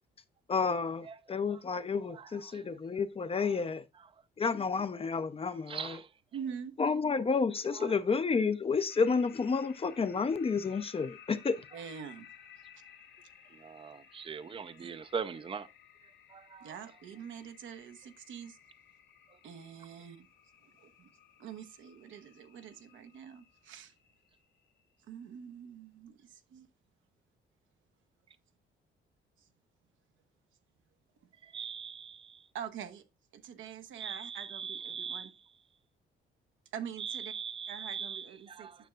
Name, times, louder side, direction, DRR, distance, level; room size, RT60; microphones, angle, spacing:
voice 1, 0.5-3.8 4.4-6.0 6.8-11.6, left 5 dB, 30° left, 0.5 m, -30 dB
voice 2, 5.7-6.1 13.6-15.7 16.3-16.7 31.5-32.4 34.0-35.3 37.0-38.8, right 6 dB, 25° right, 0.5 m, -40 dB
voice 3, 6.3-6.7 11.7-12.3 14.8-14.9 16.6-18.6 19.4-20.3 20.8-21.1 21.4-23.9 25.0-26.7 32.5-33.0 33.3-35.3 36.7-37.3 37.7-38.7, right 8 dB, 80° right, 0.9 m, -45 dB
sound 1, 8.9-25.6, left 9 dB, 70° left, 2.3 m, -58 dB
9.2 x 6.5 x 2.3 m
cardioid pair, 90°, 20 cm